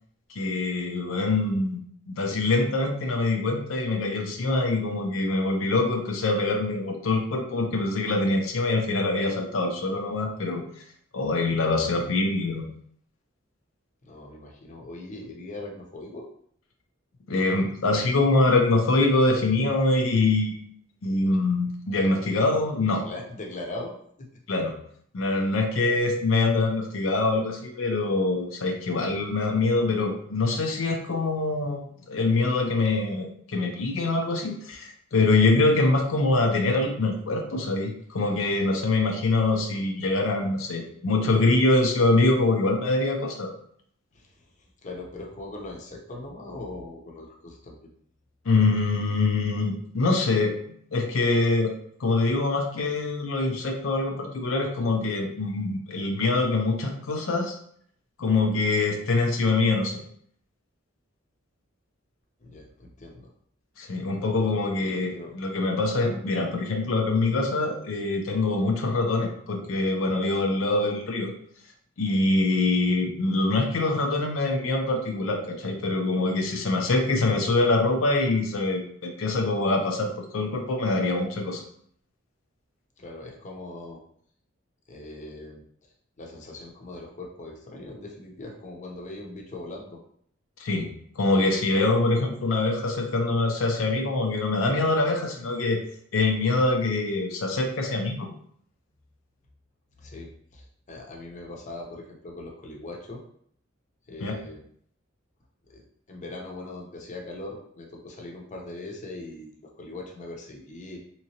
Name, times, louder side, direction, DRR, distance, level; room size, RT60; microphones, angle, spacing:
voice 1, 0.3-10.6 11.1-12.6 17.3-20.6 21.0-23.0 24.5-24.7 25.1-43.5 48.5-50.5 50.9-57.6 58.2-60.0 63.8-71.3 72.0-81.6 90.6-90.9 91.2-95.8 96.1-98.3 104.2-104.4, left 2 dB, 80° left, 2 dB, 0.5 m, -24 dB
voice 2, 14.0-16.3 22.9-24.3 44.1-44.4 44.8-47.8 62.4-63.3 64.4-65.3 83.0-84.0 84.9-85.9 86.2-90.0 100.0-103.2 104.1-104.6 105.7-105.8 106.1-111.0, left 2 dB, 40° left, 0 dB, 0.7 m, -40 dB
3.6 x 2.9 x 2.8 m, 0.63 s
head